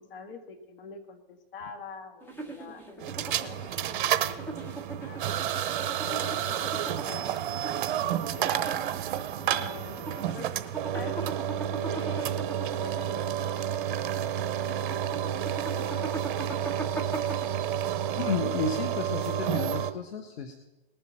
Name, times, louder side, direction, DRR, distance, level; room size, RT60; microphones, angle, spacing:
voice 1, 0.0-5.4 6.0-8.6 9.4-10.5 10.9-12.3 12.8-13.2 15.7-16.3, left 5 dB, 60° left, 6 dB, 2.1 m, -45 dB
sound 1, 2.2-19.1, right 3 dB, 5° left, 1.3 m, -41 dB
sound 2, 3.0-19.9, right 10 dB, 55° right, 0.9 m, -30 dB
voice 2, 18.1-20.5, left 5 dB, 80° left, 5 dB, 1.5 m, -32 dB
19.5 x 7.1 x 5.8 m, 0.99 s
hypercardioid pair, 145°, 31 cm